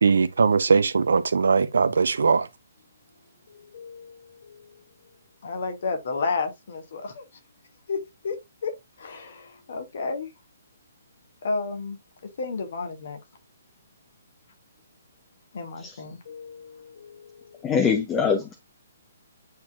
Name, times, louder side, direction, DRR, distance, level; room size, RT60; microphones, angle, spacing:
voice 1, 0.0-2.5, right 5 dB, 65° right, 0.7 m, -20 dB
voice 2, 3.5-4.8 5.4-7.2 7.9-8.4 8.6-10.3 11.4-12.0 12.4-13.2 15.5-17.7, left 4 dB, 50° left, 1.9 m, -32 dB
voice 3, 17.6-18.5, left 6 dB, 15° left, 1.0 m, -23 dB
9.3 x 4.3 x 2.4 m
figure-of-eight pair, 130°, 0 cm